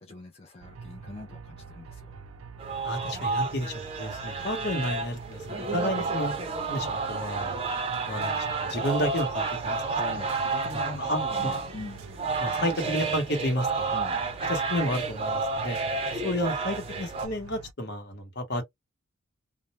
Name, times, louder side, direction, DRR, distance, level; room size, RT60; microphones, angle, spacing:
voice 1, 0.0-2.1 9.9-12.0 13.9-14.2, left 2 dB, 30° left, 0.5 m, -41 dB
sound 1, 0.6-17.7, right 5 dB, 80° right, 0.4 m, -45 dB
sound 2, 2.6-17.3, right 4 dB, 25° right, 0.5 m, -31 dB
voice 2, 2.8-6.4 6.7-7.6 8.1-9.8 10.7-11.5 12.4-13.9 14.5-15.8 16.1-18.6, equal, 50° left, 1.0 m, -31 dB
2.3 x 2.0 x 2.9 m
head